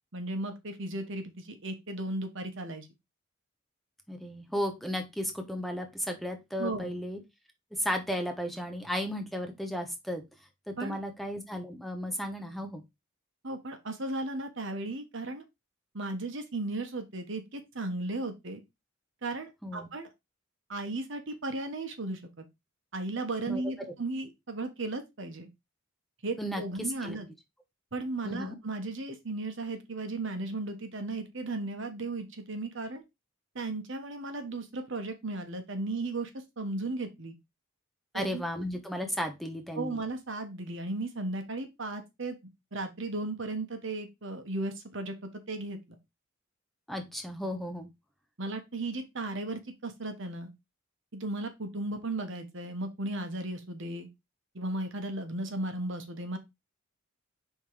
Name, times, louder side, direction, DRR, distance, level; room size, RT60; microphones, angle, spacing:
voice 1, 0.1-2.9 6.6-6.9 10.8-11.0 13.4-15.4 15.9-18.6 19.2-20.1 20.7-22.4 22.9-25.5 26.2-27.3 27.9-33.0 33.5-36.3 36.6-37.3 38.1-38.4 39.7-42.4 42.7-45.1 45.5-45.8 48.4-50.5 51.1-54.1 54.5-56.4, right 2 dB, 65° right, 7 dB, 1.2 m, -35 dB
voice 2, 4.1-7.2 7.7-10.2 10.7-12.8 19.6-19.9 23.5-23.9 26.4-27.2 28.2-28.5 38.1-40.0 46.9-47.9, equal, ahead, 4 dB, 0.9 m, -34 dB
5.2 x 3.8 x 4.8 m, 0.21 s
head